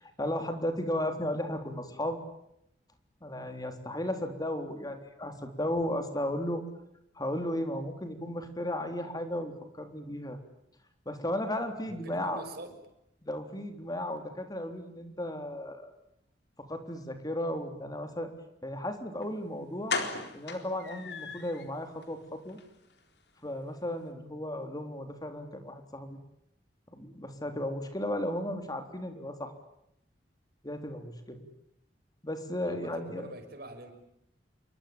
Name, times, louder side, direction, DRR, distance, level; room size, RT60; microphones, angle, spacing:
voice 1, 0.0-2.2 3.2-6.6 7.2-10.4 11.1-12.4 13.2-15.9 16.7-18.3 18.6-20.0 20.3-22.6 23.4-26.2 26.9-29.5 30.6-31.4 32.2-33.3, left 1 dB, 20° left, 7 dB, 3.7 m, -35 dB
voice 2, 11.9-12.7 32.6-33.9, right 1 dB, 60° right, 6 dB, 6.1 m, -45 dB
sound 1, 19.2-19.3 19.9-21.7 22.0-22.1 22.5-22.6 22.9-23.0, left 4 dB, 70° left, 4.2 m, -35 dB
28.5 x 23.5 x 8.8 m, 0.80 s
head